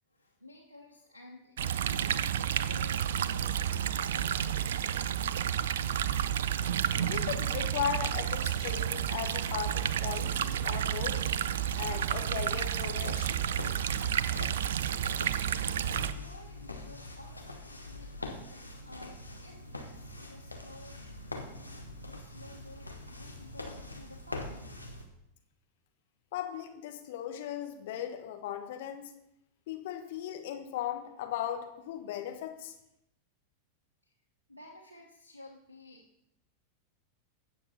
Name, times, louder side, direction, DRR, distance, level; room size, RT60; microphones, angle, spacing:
voice 1, 0.1-2.3 2.7-5.2 15.9-21.4 22.0-24.7 34.0-34.1 34.5-36.1, left 1 dB, 85° right, -1 dB, 1.1 m, -53 dB
sound 1, 1.6-16.1, right 9 dB, 60° right, 0.4 m, -31 dB
voice 2, 7.0-11.3 11.7-13.4 26.3-29.0 29.7-32.7, left 10 dB, 55° left, 5 dB, 1.1 m, -37 dB
sound 2, 13.0-25.1, left 2 dB, 85° left, 1.1 m, -44 dB
16.5 x 7.2 x 2.8 m, 0.81 s
figure-of-eight pair, 90°, 0 cm